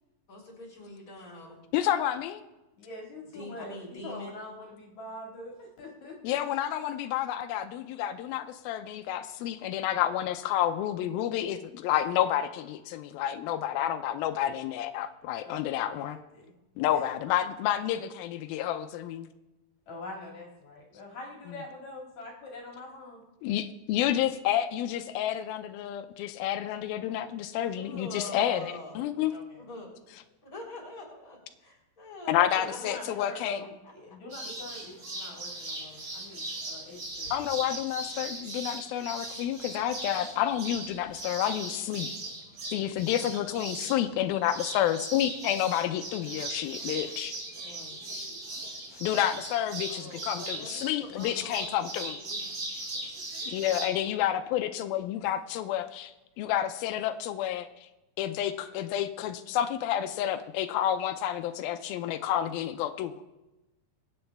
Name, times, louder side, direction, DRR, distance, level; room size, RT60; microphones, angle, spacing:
voice 1, 0.3-1.6 3.3-4.4 27.7-29.1 29.6-29.9 30.4-34.2 49.9-52.5, left 1 dB, 25° left, -2 dB, 3.8 m, -44 dB
voice 2, 1.7-2.4 6.2-16.2 16.8-19.3 23.4-29.3 32.3-33.6 37.3-42.1 42.7-47.3 48.9-52.2 53.5-57.9 58.2-63.3, left 11 dB, 90° left, 9 dB, 2.4 m, -30 dB
voice 3, 2.8-6.6 14.1-14.2 15.4-16.5 16.9-17.0 19.9-23.2 29.3-29.6 32.6-37.3 37.6-37.8 47.6-48.0, left 2 dB, 55° left, -1 dB, 2.9 m, -44 dB
sound 1, 34.3-53.9, right 2 dB, 35° right, 3.6 m, -39 dB
23.5 x 8.8 x 3.4 m, 1.0 s
omnidirectional pair, 4.2 m